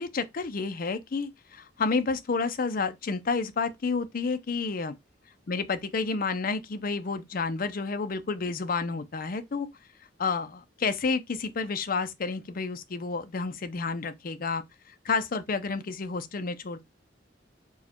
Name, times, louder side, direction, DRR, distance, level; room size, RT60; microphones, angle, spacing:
voice 1, 0.0-4.9 5.5-9.7 10.2-16.8, left 4 dB, 50° left, 0.5 m, -30 dB
4.6 x 2.2 x 4.3 m
head